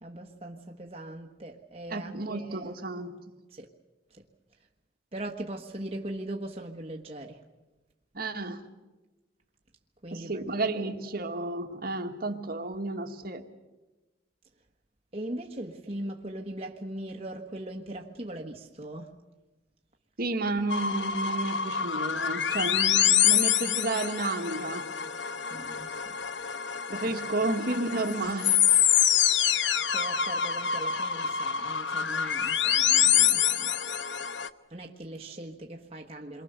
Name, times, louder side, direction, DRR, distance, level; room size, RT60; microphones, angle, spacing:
voice 1, 0.0-2.7 3.5-3.7 4.1-4.2 5.1-7.4 10.0-10.4 15.1-19.1 25.5-26.1 27.0-27.1 29.9-33.7 34.7-36.4, right 1 dB, 35° right, 1.4 m, -40 dB
voice 2, 1.9-3.2 8.1-8.6 10.1-13.4 20.2-24.9 26.9-28.6, right 2 dB, 55° right, 1.9 m, -32 dB
sound 1, 20.7-34.5, left 9 dB, 90° left, 0.9 m, -26 dB
28.0 x 23.5 x 6.9 m
head